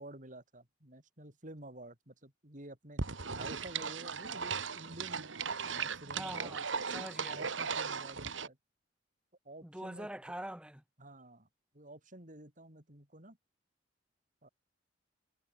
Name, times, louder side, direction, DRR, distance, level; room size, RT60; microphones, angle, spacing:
voice 1, 0.0-3.0 3.3-5.3 5.6-6.7 7.2-8.6 9.4-10.1 11.0-11.5 11.7-13.4 14.4-14.5, right 1 dB, 45° right, 6.6 m, -51 dB
sound 1, 3.0-8.5, right 5 dB, 85° right, 1.9 m, -37 dB
voice 2, 6.2-6.6 6.9-7.5 9.6-10.8, right 1 dB, 5° right, 1.3 m, -44 dB
head